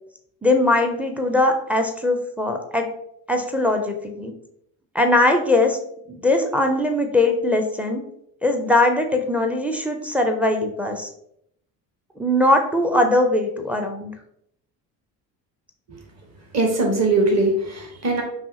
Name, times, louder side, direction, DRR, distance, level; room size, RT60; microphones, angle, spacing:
voice 1, 0.4-2.9 3.3-4.3 4.9-5.8 6.1-8.0 8.4-11.1 12.2-14.1, left 2 dB, 5° right, 4 dB, 0.4 m, -20 dB
voice 2, 16.5-18.2, right 2 dB, 30° right, 1 dB, 1.2 m, -20 dB
5.4 x 2.4 x 2.7 m, 0.73 s
hypercardioid pair, 55°, 49 cm